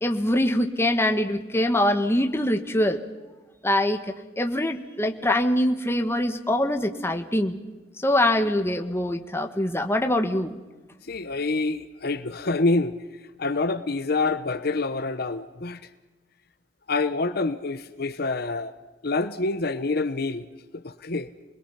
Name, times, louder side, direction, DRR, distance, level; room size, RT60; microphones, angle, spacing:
voice 1, 0.0-3.0 3.6-4.0 4.4-7.6 8.0-10.5, left 1 dB, 15° left, 1.6 m, -23 dB
voice 2, 11.1-13.0 13.4-15.8 16.9-18.7 19.0-20.5 20.7-21.3, left 3 dB, 60° left, 1.1 m, -26 dB
29.0 x 21.5 x 5.8 m
head